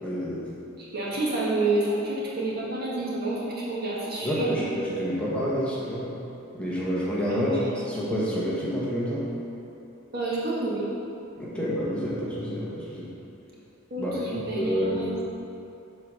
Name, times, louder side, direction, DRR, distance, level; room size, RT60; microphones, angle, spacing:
voice 1, 0.0-0.4 4.2-6.1 6.5-7.5 7.9-9.3 11.4-13.1 14.0-14.1 14.5-15.0, equal, 5° left, -8 dB, 1.1 m, -28 dB
voice 2, 0.8-4.7 7.3-7.8 10.1-10.9 13.9-15.2, right 2 dB, 50° right, -6 dB, 1.7 m, -29 dB
7.9 x 3.9 x 6.1 m, 2.9 s
head